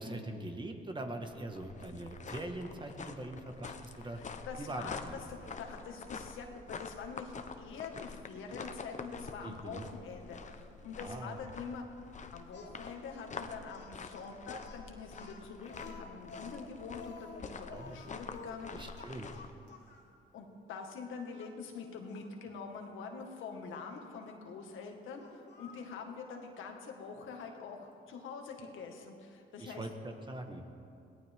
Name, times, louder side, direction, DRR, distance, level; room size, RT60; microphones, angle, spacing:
voice 1, 0.0-4.2 4.6-5.2 9.4-9.8 11.0-11.4 17.7-18.0 18.7-19.3 29.6-30.6, right 1 dB, 25° right, 4 dB, 1.7 m, -42 dB
sound 1, 1.2-19.5, left 4 dB, 35° left, 1.0 m, -47 dB
voice 2, 3.9-11.9 12.3-19.1 20.3-29.8, left 5 dB, 80° left, 2 dB, 1.9 m, -45 dB
Speech, 12.5-20.1 20.7-20.9 21.4-22.3 23.7-24.0 25.2-25.9, left 4 dB, 60° left, 2.6 m, -52 dB
21.5 x 17.5 x 3.7 m, 2.6 s
cardioid pair, 90°, 20 cm